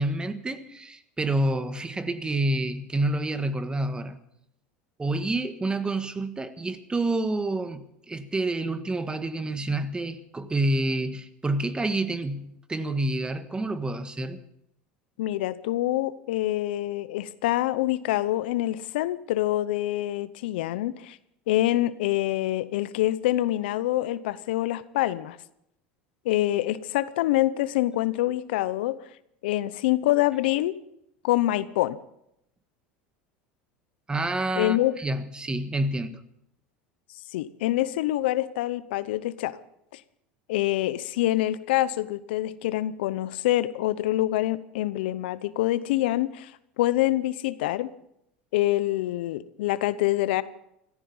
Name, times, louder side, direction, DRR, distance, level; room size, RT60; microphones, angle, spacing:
voice 1, 0.0-4.2 5.0-14.4 34.1-36.2, right 2 dB, 15° right, 11 dB, 1.5 m, -28 dB
voice 2, 15.2-21.2 21.5-25.4 26.2-28.9 29.4-30.7 31.2-32.0 34.6-34.9 37.3-39.6 39.9-40.0 40.5-46.5 46.8-47.9 48.5-50.4, left 15 dB, 80° left, 16 dB, 0.8 m, -26 dB
17.0 x 14.5 x 5.6 m, 0.77 s
hypercardioid pair, 95°, 6 cm